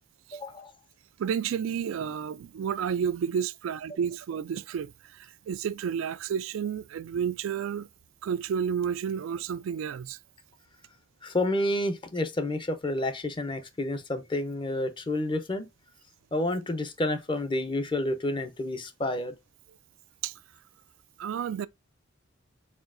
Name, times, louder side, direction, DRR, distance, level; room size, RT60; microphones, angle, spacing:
voice 1, 0.3-0.7 11.2-15.7 16.3-19.3, left 1 dB, 25° left, 0.6 m, -29 dB
voice 2, 1.2-7.9 8.2-10.2 20.2-20.3 21.2-21.7, right 7 dB, 85° right, 0.3 m, -31 dB
4.3 x 4.0 x 2.5 m
head